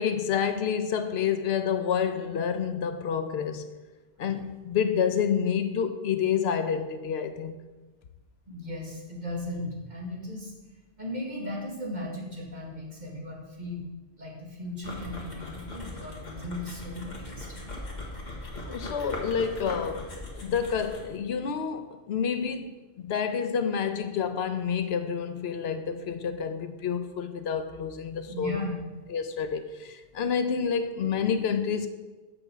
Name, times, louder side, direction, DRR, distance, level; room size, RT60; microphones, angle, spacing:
voice 1, 0.0-3.7 4.2-7.5 18.7-28.6 29.1-31.9, left 7 dB, 75° left, 0.8 m, -29 dB
voice 2, 8.5-10.5 11.0-17.7 28.3-28.8, left 1 dB, 45° right, 2.0 m, -37 dB
sound 1, 14.8-21.2, left 2 dB, 45° left, 1.6 m, -40 dB
6.6 x 5.3 x 6.9 m
omnidirectional pair, 1.1 m